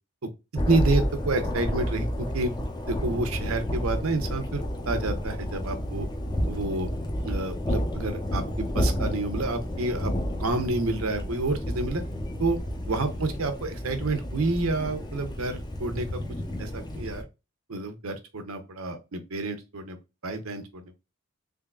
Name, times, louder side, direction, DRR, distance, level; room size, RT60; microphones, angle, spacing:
Thunder, 0.5-17.2, equal, 20° left, 0.6 m, -31 dB
voice 1, 0.7-2.5 2.9-6.1 6.5-6.9 7.2-10.1 10.4-12.0 12.4-12.6 12.9-16.2 16.6-17.2 17.7-20.0 20.2-20.8, right 2 dB, 75° right, 0.9 m, -29 dB
3.6 x 3.3 x 2.2 m
head